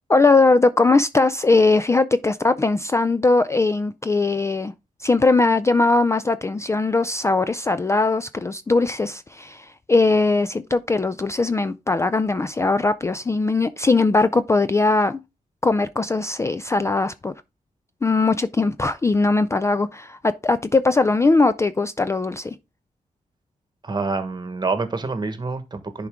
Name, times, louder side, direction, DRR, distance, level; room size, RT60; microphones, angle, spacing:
voice 1, 0.1-4.7 5.0-15.2 15.6-17.3 18.0-22.5, left 3 dB, 20° left, 0.3 m, -20 dB
voice 2, 23.8-26.1, right 3 dB, 30° right, 1.3 m, -27 dB
11.0 x 4.6 x 3.6 m
wide cardioid pair, 130°, 14 cm